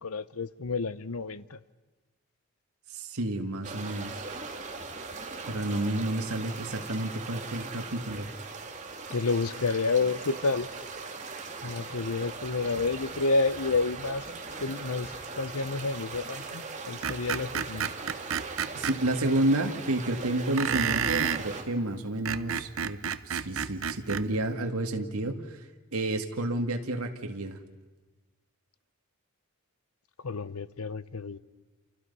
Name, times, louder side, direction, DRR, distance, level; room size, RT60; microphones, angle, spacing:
voice 1, 0.0-1.6 9.1-10.7 11.6-14.3 14.6-17.9 30.2-31.4, left 3 dB, 75° left, 0.8 m, -30 dB
voice 2, 2.9-4.3 5.5-8.3 18.7-23.0 23.3-25.6 25.9-27.6, right 1 dB, 80° right, 2.0 m, -30 dB
sound 1, 3.6-21.6, right 4 dB, 35° right, 2.3 m, -40 dB
Screech, 17.0-19.0 20.6-21.4 22.1-24.3, right 7 dB, 60° right, 0.7 m, -30 dB
29.5 x 29.0 x 5.5 m
head